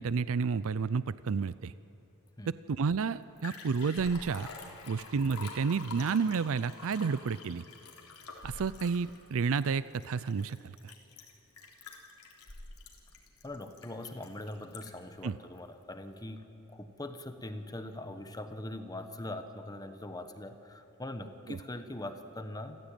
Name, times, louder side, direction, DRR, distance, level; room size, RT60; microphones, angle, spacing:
voice 1, 0.0-1.7 2.7-4.5 4.9-7.6 8.4-10.6 10.8-10.9 15.2-15.3 21.5-21.6, right 5 dB, 65° right, 16 dB, 0.5 m, -30 dB
Liquid, 2.9-3.0 3.2-15.1 15.6-15.7, left 3 dB, 85° left, 3.5 m, -47 dB
voice 2, 13.4-22.8, left 1 dB, 15° left, 8 dB, 1.1 m, -42 dB
28.0 x 15.0 x 9.0 m, 2.8 s
head